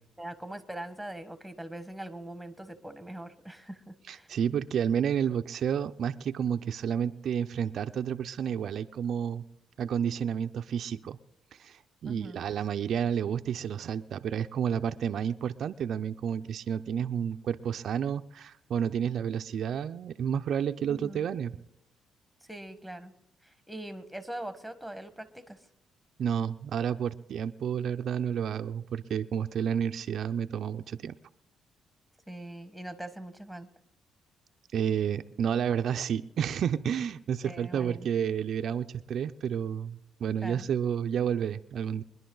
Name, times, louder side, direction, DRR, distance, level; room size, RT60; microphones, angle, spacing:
voice 1, 0.2-4.3 12.0-12.4 20.9-21.3 22.4-23.1 23.4-25.6 32.3-33.7 37.4-38.1 40.4-40.7, right 1 dB, ahead, 10 dB, 1.4 m, -42 dB
voice 2, 4.1-9.4 9.8-11.2 11.5-21.6 26.2-31.1 34.7-42.0, right 8 dB, 65° right, 8 dB, 0.5 m, -30 dB
23.5 x 11.0 x 3.9 m, 0.83 s
cardioid pair, 90°, 0 cm